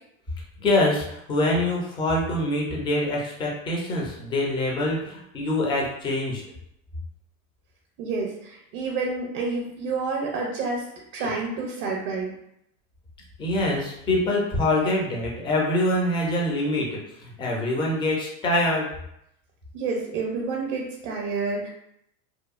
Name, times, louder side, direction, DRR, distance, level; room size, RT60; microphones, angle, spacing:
voice 1, 0.6-6.4 11.2-11.3 13.4-18.9, left 1 dB, 10° left, -2 dB, 0.3 m, -25 dB
voice 2, 8.0-10.8 11.1-12.3 19.7-21.7, right 4 dB, 50° right, -1 dB, 0.6 m, -29 dB
2.8 x 2.2 x 2.4 m, 0.77 s
supercardioid pair, 120°, 43 cm